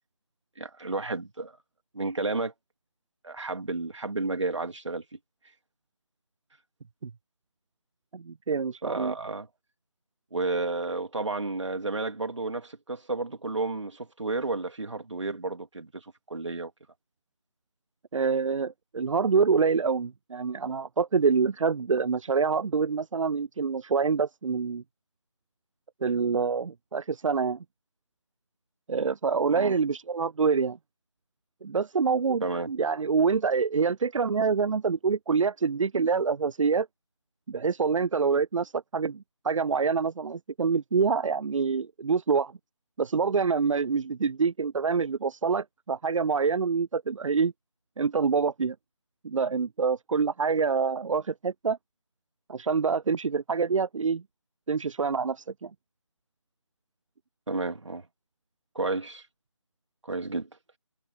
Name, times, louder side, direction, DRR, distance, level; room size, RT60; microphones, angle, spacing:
voice 1, 0.6-1.6 1.9-2.5 3.2-5.0 8.8-9.5 10.3-16.7 29.5-29.7 32.4-32.7 57.5-58.1 58.7-59.2 60.0-60.5, right 3 dB, 65° right, 3.0 m, -31 dB
voice 2, 8.1-9.1 18.1-24.8 26.0-27.6 28.9-30.8 31.6-36.9 37.5-42.5 43.0-47.5 48.0-48.8 49.2-51.8 52.5-54.2 54.7-55.7, right 5 dB, 90° right, 0.4 m, -26 dB
figure-of-eight pair, 170°, 16 cm